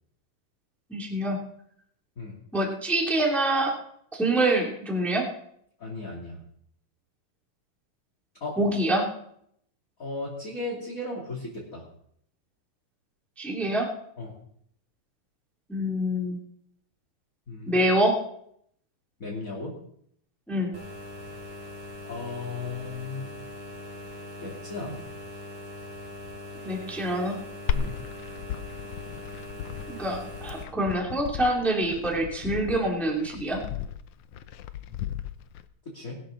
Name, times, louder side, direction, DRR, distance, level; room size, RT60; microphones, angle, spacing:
voice 1, 0.9-1.4 2.5-3.7 4.2-5.2 8.6-9.0 13.4-13.9 15.7-16.4 17.7-18.1 20.5-20.7 26.6-27.3 29.9-33.6, right 1 dB, ahead, -1 dB, 2.4 m, -25 dB
voice 2, 5.8-6.4 8.4-8.6 10.0-11.8 14.2-14.3 17.5-17.8 19.2-19.8 22.0-23.3 24.4-25.1 27.7-28.0 35.9-36.2, left 3 dB, 25° left, -3 dB, 2.8 m, -35 dB
sound 1, 20.7-30.6, left 1 dB, 70° right, 5.7 m, -41 dB
Glass, 27.7-35.7, left 8 dB, 80° left, 1.3 m, -35 dB
20.5 x 12.5 x 3.9 m, 0.69 s
omnidirectional pair, 3.6 m